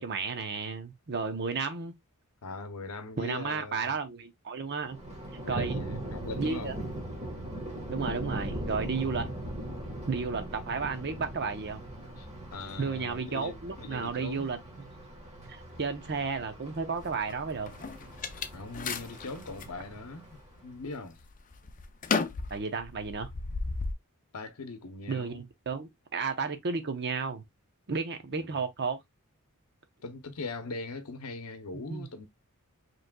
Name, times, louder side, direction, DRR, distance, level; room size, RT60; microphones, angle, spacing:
voice 1, 0.0-1.9 3.2-5.0 5.5-5.8 6.4-6.7 7.9-9.3 10.1-11.8 12.8-14.6 15.5-17.7 22.5-23.3 25.1-27.4 27.9-29.0 31.9-32.1, right 4 dB, 50° right, 0.8 m, -33 dB
voice 2, 2.4-3.9 5.4-6.8 12.2-14.5 18.5-21.2 24.3-25.4 28.3-28.6 30.0-32.3, left 3 dB, 70° left, 0.7 m, -41 dB
Thunder, 4.8-20.8, right 1 dB, 30° right, 1.4 m, -40 dB
sound 1, 17.0-19.7 20.3-20.8 21.2-23.9, left 4 dB, 35° left, 0.5 m, -34 dB
5.0 x 3.2 x 2.2 m
head